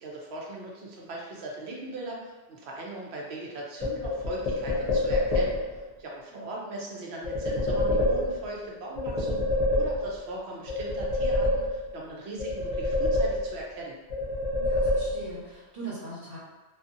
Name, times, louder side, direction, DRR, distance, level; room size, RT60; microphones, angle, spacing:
voice 1, 0.0-5.6 6.0-9.5 9.7-13.9, right 2 dB, 80° right, -2 dB, 0.9 m, -39 dB
sound 1, 3.8-5.8 7.2-8.6 9.0-10.3 10.7-12.0 12.4-13.8 14.1-15.5, left 1 dB, 40° left, 0.7 m, -27 dB
voice 2, 14.6-16.4, right 3 dB, 50° right, -10 dB, 1.3 m, -40 dB
2.6 x 2.4 x 2.5 m, 1.2 s
omnidirectional pair, 1.1 m